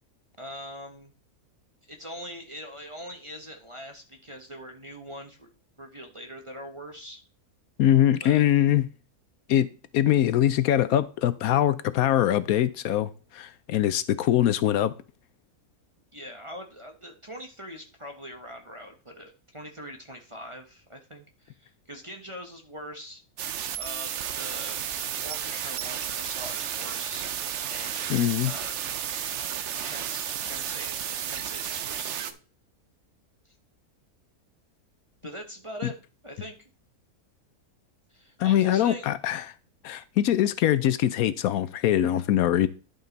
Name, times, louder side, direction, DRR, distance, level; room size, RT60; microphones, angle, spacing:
voice 1, 0.4-1.1 1.9-7.2 8.2-8.4 16.1-23.2 23.8-27.3 27.7-28.1 28.4-28.7 29.8-32.4 33.5-33.6 35.2-36.0 36.2-36.7 38.1-39.1, equal, 25° right, 0.9 m, -42 dB
voice 2, 7.8-8.9 9.5-9.7 9.9-14.9 28.1-28.5 38.4-39.4 39.8-42.7, left 11 dB, 75° left, 1.0 m, -23 dB
sound 1, 23.4-32.3, right 9 dB, 60° right, 0.8 m, -32 dB
11.0 x 5.3 x 4.0 m
omnidirectional pair, 1.6 m